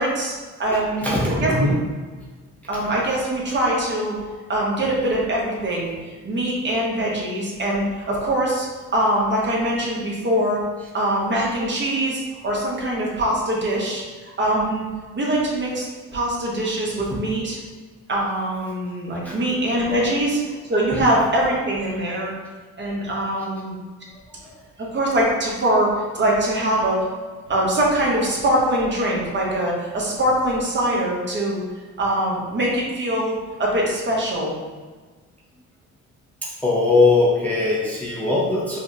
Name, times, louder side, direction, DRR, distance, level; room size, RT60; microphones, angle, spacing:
voice 1, 0.0-1.1 1.4-1.7 2.7-4.1 4.5-8.7 8.9-10.6 10.9-14.0 14.4-14.8 15.1-15.9 16.1-17.6 18.1-20.4 20.7-22.3 22.8-23.8 24.8-27.1 27.5-31.6 32.0-33.3 33.6-34.6, right 1 dB, 40° right, -4 dB, 1.1 m, -23 dB
voice 2, 0.7-1.8 17.1-17.2 19.2-19.4 20.9-21.0 24.4-24.6 36.4-38.8, left 3 dB, 5° left, -5 dB, 0.6 m, -21 dB
5.0 x 2.3 x 2.7 m, 1.4 s
cardioid pair, 90°, 30 cm